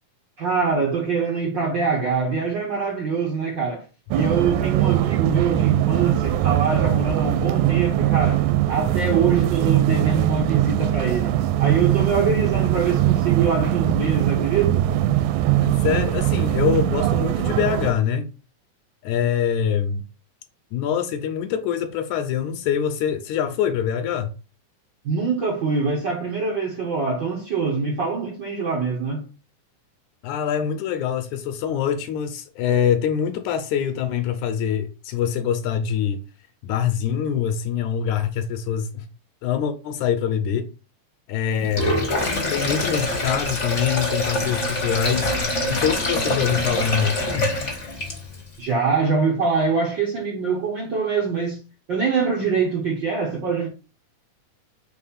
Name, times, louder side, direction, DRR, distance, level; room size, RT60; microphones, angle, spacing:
voice 1, 0.4-8.4 8.7-14.8 25.0-29.3 48.6-51.6 51.9-53.7, right 5 dB, 65° right, 1.2 m, -24 dB
sound 1, 4.1-17.9, right 13 dB, 80° right, 2.0 m, -21 dB
voice 2, 15.6-18.3 19.0-20.0 20.7-24.3 30.2-36.2 36.6-39.1 39.4-40.7 41.3-42.0 42.5-45.3 45.7-47.5, left 8 dB, 75° left, 2.0 m, -24 dB
Sink (filling or washing), 41.6-48.5, left 1 dB, 35° left, 1.1 m, -25 dB
4.6 x 4.2 x 5.7 m
omnidirectional pair, 3.6 m